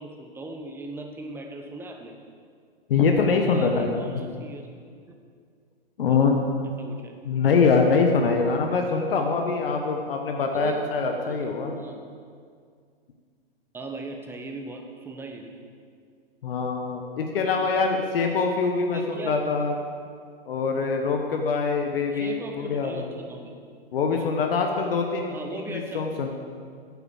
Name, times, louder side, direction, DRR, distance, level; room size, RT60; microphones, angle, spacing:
voice 1, 0.0-2.2 3.2-4.7 5.1-5.2 6.0-6.3 6.6-7.2 10.5-10.9 11.2-12.0 13.7-15.5 18.9-19.4 22.1-23.6 25.3-26.0, right 2 dB, 5° right, 3 dB, 0.8 m, -38 dB
voice 2, 2.9-4.2 6.0-6.4 7.2-11.7 16.4-19.7 20.5-23.0 23.9-25.4 25.7-26.3, left 4 dB, 65° left, 3 dB, 1.2 m, -24 dB
9.9 x 7.1 x 6.3 m, 2.1 s
hypercardioid pair, 125°, 30 cm